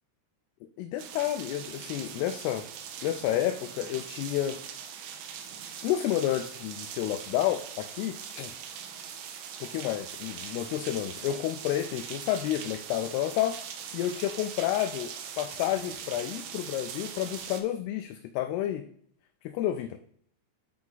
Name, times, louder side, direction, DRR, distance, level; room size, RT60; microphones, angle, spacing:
voice 1, 0.8-2.6 3.0-4.6 5.8-8.5 9.6-13.6 13.9-18.8 19.4-20.0, left 12 dB, 80° left, 7 dB, 2.4 m, -30 dB
sound 1, 1.0-17.6, right 8 dB, 75° right, 2.2 m, -41 dB
9.7 x 4.7 x 3.9 m, 0.63 s
omnidirectional pair, 4.9 m